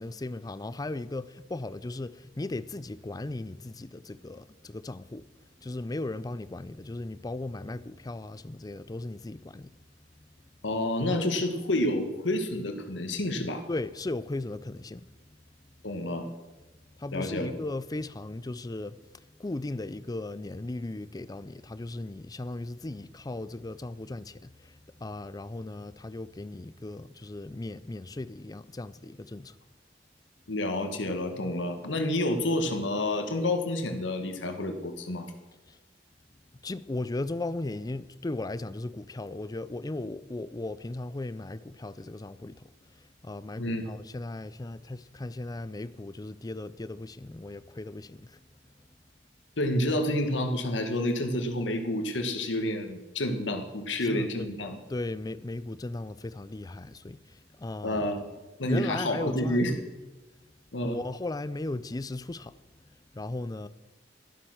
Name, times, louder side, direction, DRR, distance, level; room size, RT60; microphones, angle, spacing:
voice 1, 0.0-5.3 5.6-9.7 10.2-10.3 13.7-15.0 15.3-15.4 17.0-29.6 35.7-35.8 36.6-42.7 43.2-48.4 54.0-54.5 54.9-58.1 58.6-59.7 60.8-62.5 63.1-63.7, left 2 dB, 20° left, 0.5 m, -37 dB
voice 2, 10.6-13.6 15.8-16.2 17.1-17.5 30.5-35.3 43.6-44.0 49.6-54.8 57.8-58.3 58.6-59.8 60.7-61.0, left 1 dB, 85° left, 1.4 m, -29 dB
12.0 x 11.5 x 6.3 m
head